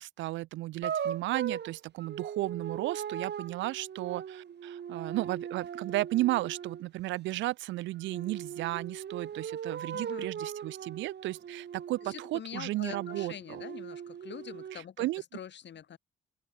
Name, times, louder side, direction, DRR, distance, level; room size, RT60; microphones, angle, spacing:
voice 1, 0.0-13.6 14.7-15.2, right 17 dB, 90° right, 0.5 m, -34 dB
sound 1, 0.8-6.9 8.1-12.4 12.9-14.8, right 8 dB, 65° right, 3.0 m, -39 dB
voice 2, 9.9-10.3 12.0-15.0 15.3-16.0, left 9 dB, 70° left, 5.1 m, -44 dB
open air
supercardioid pair, 55°, 19 cm